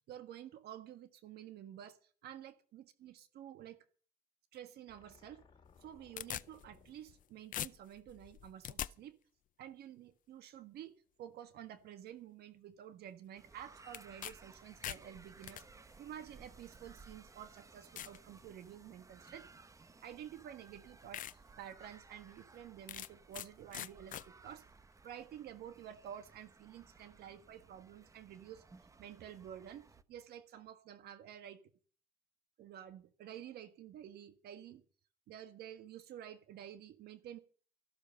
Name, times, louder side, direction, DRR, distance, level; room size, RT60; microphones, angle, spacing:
voice 1, 0.1-3.9 4.5-5.4 5.8-9.2 9.6-10.9 11.2-15.6 16.0-19.5 20.0-24.6 25.0-28.6 29.0-31.6 32.6-34.8 35.3-37.4, right 10 dB, 70° right, 11 dB, 1.5 m, -51 dB
sound 1, 4.9-8.2, left 5 dB, 30° left, 3.0 m, -66 dB
sound 2, 5.7-7.2 7.5-8.9 13.9-14.3 14.6-15.6 16.5-16.6 17.2-17.3 18.0-18.2 18.7-19.0 20.2-20.3 20.7-20.8 21.1-21.3 21.8-21.9 22.9-23.5 23.7-24.2, left 12 dB, 50° left, 0.6 m, -43 dB
sound 3, 13.4-30.0, right 3 dB, 20° right, 0.8 m, -60 dB
14.0 x 12.5 x 5.5 m, 0.42 s
cardioid pair, 110°, 17 cm